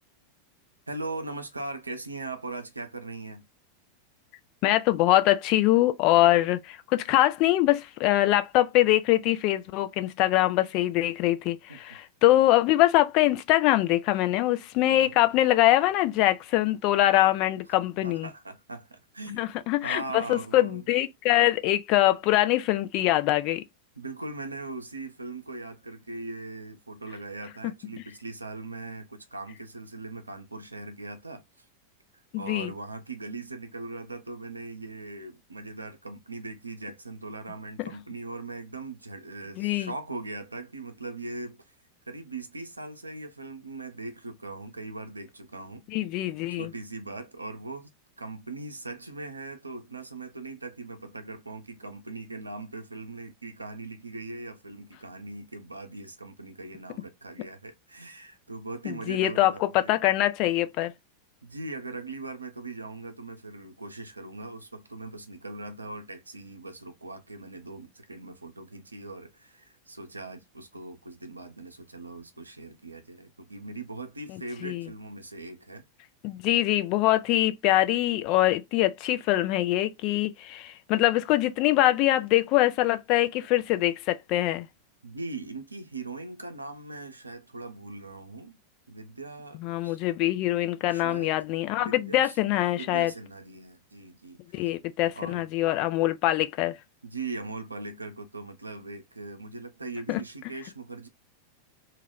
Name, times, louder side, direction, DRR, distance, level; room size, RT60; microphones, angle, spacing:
voice 1, 0.9-3.4 11.7-11.8 14.9-15.2 18.0-19.5 19.8-20.8 24.0-31.4 32.4-41.7 42.1-45.8 46.5-47.9 48.2-59.9 61.4-75.8 85.0-88.6 88.9-90.0 90.9-91.4 91.7-92.4 92.8-94.7 95.2-95.4 97.0-101.1, right 2 dB, 80° right, 0.5 m, -40 dB
voice 2, 4.6-18.3 19.4-23.6 27.6-27.7 32.3-32.7 37.8-37.9 39.6-39.9 45.9-46.7 58.9-60.9 74.3-74.9 76.2-84.7 89.6-93.1 94.5-96.8 100.1-100.2, left 15 dB, 40° left, 0.3 m, -23 dB
2.3 x 2.1 x 3.3 m
figure-of-eight pair, 90°, 0 cm